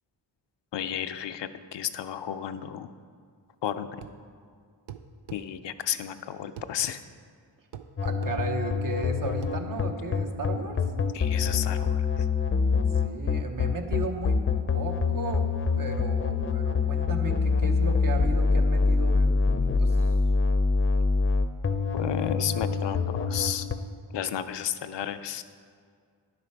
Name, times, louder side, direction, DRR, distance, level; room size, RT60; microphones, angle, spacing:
voice 1, 0.7-2.9 3.6-3.9 5.3-7.0 11.1-12.3 21.9-23.7 24.1-25.4, left 10 dB, 80° left, 10 dB, 0.5 m, -32 dB
sound 1, 4.0-4.2 4.9-5.4 6.6-6.7 7.7-7.9 8.2-8.4 9.4-9.6, right 10 dB, 80° right, 0.6 m, -42 dB
sound 2, 8.0-23.8, left 4 dB, 30° left, 0.6 m, -25 dB
voice 2, 8.0-10.8 13.0-14.4 14.7-15.5 15.7-20.1, right 3 dB, 50° right, 4 dB, 1.0 m, -35 dB
10.0 x 6.7 x 4.5 m, 2.1 s
cardioid pair, 55°, 42 cm